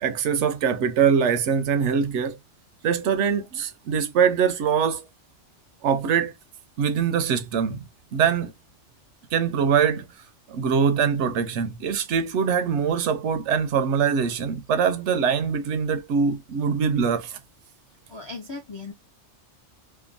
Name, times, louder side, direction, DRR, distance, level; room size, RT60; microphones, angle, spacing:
voice 1, 0.0-2.4 2.8-5.0 5.8-6.3 6.8-7.9 8.1-8.5 9.3-10.1 10.5-17.4, right 7 dB, 70° right, 0.8 m, -23 dB
voice 2, 18.1-18.9, left 3 dB, 40° left, 0.3 m, -37 dB
2.9 x 2.2 x 2.4 m
omnidirectional pair, 1.3 m